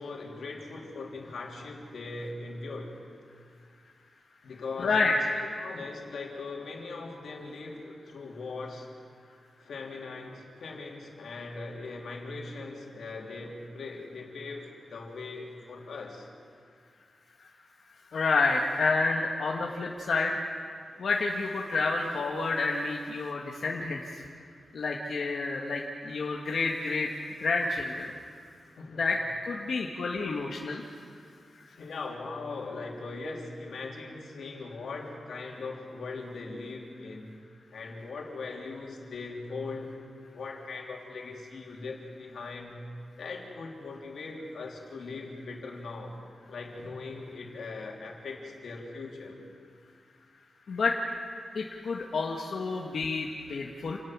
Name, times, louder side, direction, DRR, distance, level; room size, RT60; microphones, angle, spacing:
voice 1, 0.0-2.9 4.4-8.9 9.6-16.3 20.9-21.0 28.7-29.1 29.8-29.9 31.7-37.4 37.7-40.0 40.3-42.9 43.2-46.2 46.5-49.4, left 3 dB, 90° left, -1 dB, 3.3 m, -40 dB
voice 2, 4.8-5.4 18.1-20.3 21.0-24.2 24.7-27.1 27.4-28.1 29.0-29.2 29.4-30.8 50.7-51.0 51.5-54.0, left 3 dB, 65° left, -1 dB, 1.5 m, -29 dB
28.5 x 18.5 x 6.1 m, 2.2 s
wide cardioid pair, 170°, 0 cm